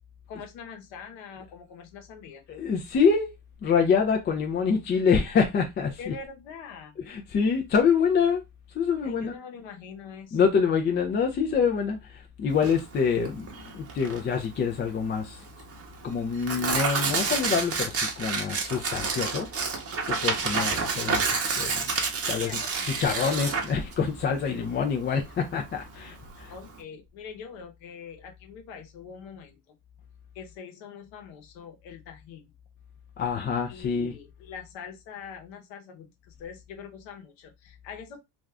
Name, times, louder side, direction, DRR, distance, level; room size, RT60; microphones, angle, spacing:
voice 1, 0.3-2.4 6.0-7.0 9.0-10.5 22.3-22.6 22.9-23.5 26.5-29.7 30.3-32.5 33.7-38.2, left 6 dB, 65° left, 0.9 m, -43 dB
voice 2, 2.5-3.3 3.6-6.1 7.1-8.4 8.7-9.3 10.3-15.4 16.0-21.9 22.3-22.6 22.9-26.5 33.2-34.1, left 6 dB, 25° left, 0.3 m, -26 dB
Tearing, 12.5-26.8, right 4 dB, 30° right, 0.7 m, -30 dB
2.5 x 2.3 x 3.2 m
supercardioid pair, 105°, 50 cm